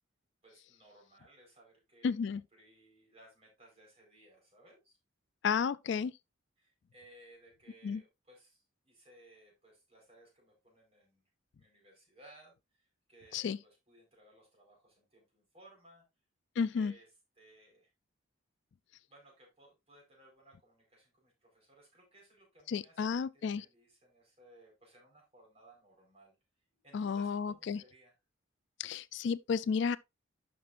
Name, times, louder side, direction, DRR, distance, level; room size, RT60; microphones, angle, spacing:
voice 1, 0.4-5.0 6.6-11.2 11.6-16.0 16.7-17.1 17.4-17.9 19.1-26.3 26.8-28.1, right 1 dB, 30° right, 4.3 m, -61 dB
voice 2, 2.0-2.4 5.4-6.1 7.8-8.0 13.3-13.6 16.6-16.9 22.7-23.7 26.9-27.8 28.8-30.0, left 6 dB, 55° left, 0.3 m, -32 dB
11.0 x 5.9 x 2.5 m
head